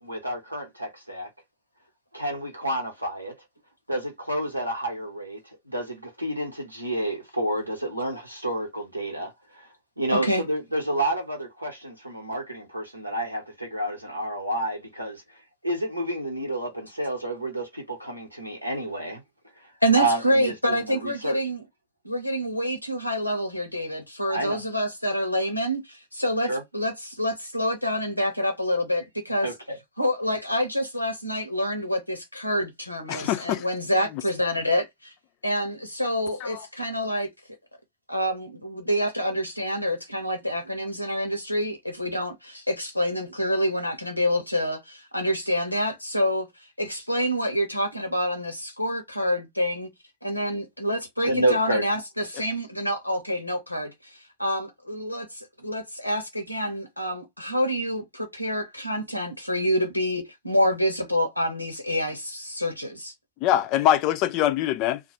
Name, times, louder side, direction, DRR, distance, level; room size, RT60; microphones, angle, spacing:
voice 1, 0.0-1.3 2.1-3.3 3.9-5.4 5.7-9.7 10.0-15.2 15.6-19.2 20.0-21.4 24.3-24.6 26.5-26.6 29.4-29.8 51.2-51.9, right 1 dB, 85° right, 0.9 m, -29 dB
voice 2, 10.1-10.4 19.8-21.6 22.0-29.5 30.0-35.1 35.4-37.3 38.1-46.5 46.8-49.9 50.2-63.1, equal, 85° left, 0.7 m, -27 dB
voice 3, 33.1-33.6 36.5-36.6 63.4-65.0, left 12 dB, 40° left, 0.4 m, -23 dB
2.3 x 2.1 x 2.8 m
figure-of-eight pair, 90°, 0 cm